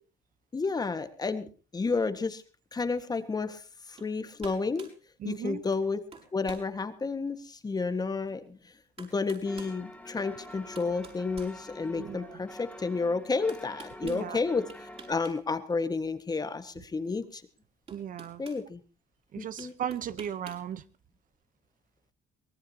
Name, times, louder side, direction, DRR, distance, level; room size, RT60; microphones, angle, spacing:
voice 1, 0.5-1.5 1.7-2.4 2.7-3.6 3.9-4.9 5.2-6.0 6.3-8.6 9.0-14.7 15.1-17.4 18.4-18.8 19.4-19.7, left 4 dB, 25° left, 1.7 m, -31 dB
sound 1, 4.0-4.1 4.4-5.0 5.7-5.9 6.1-6.7 7.3-7.4 8.5-8.6 9.0-9.8 10.4-12.1 13.5-14.2 14.7-15.4 15.7-15.8 17.2-17.3 17.9-18.6 19.6-20.7, right 4 dB, 35° right, 5.6 m, -49 dB
voice 2, 5.2-5.6 12.0-12.4 14.0-14.4 17.9-18.4 19.3-20.8, right 9 dB, 50° right, 0.9 m, -36 dB
sound 2, 9.4-15.1, left 1 dB, 10° left, 3.2 m, -47 dB
23.5 x 18.0 x 2.9 m
cardioid pair, 110°, 17 cm